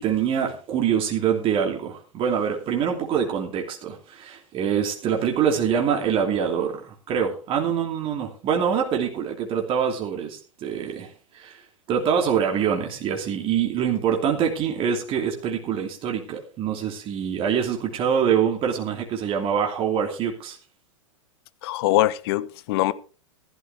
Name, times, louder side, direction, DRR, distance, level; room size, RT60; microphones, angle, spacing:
voice 1, 0.0-11.6 11.9-20.6, right 8 dB, 30° right, 2.9 m, -25 dB
voice 2, 21.6-22.9, left 16 dB, 50° left, 0.9 m, -22 dB
15.0 x 12.5 x 3.5 m
figure-of-eight pair, 100°, 17 cm